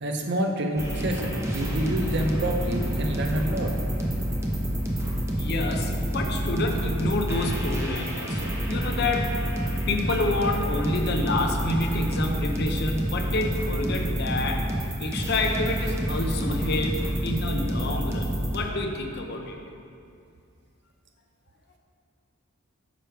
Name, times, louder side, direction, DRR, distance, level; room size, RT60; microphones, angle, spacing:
voice 1, 0.0-3.7, right 1 dB, 55° right, 3 dB, 0.6 m, -28 dB
sound 1, 0.8-18.6, equal, 15° right, 0.6 m, -28 dB
voice 2, 5.4-9.3 9.9-14.6 15.0-19.6, left 2 dB, 50° left, 3 dB, 0.6 m, -28 dB
6.2 x 5.0 x 4.5 m, 2.4 s
head